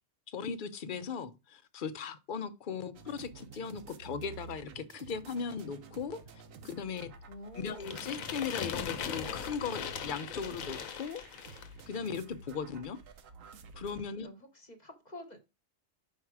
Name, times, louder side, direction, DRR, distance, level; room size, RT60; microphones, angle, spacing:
voice 1, 0.3-6.2 6.6-7.1 7.5-13.0 13.8-14.3, left 6 dB, 50° left, 0.6 m, -38 dB
sound 1, 2.9-14.0, right 5 dB, 75° right, 1.2 m, -51 dB
voice 2, 7.3-8.0 14.2-15.4, left 1 dB, 35° left, 1.1 m, -49 dB
sound 2, 7.8-11.8, left 7 dB, 90° left, 1.2 m, -39 dB
5.8 x 4.7 x 4.6 m
omnidirectional pair, 1.4 m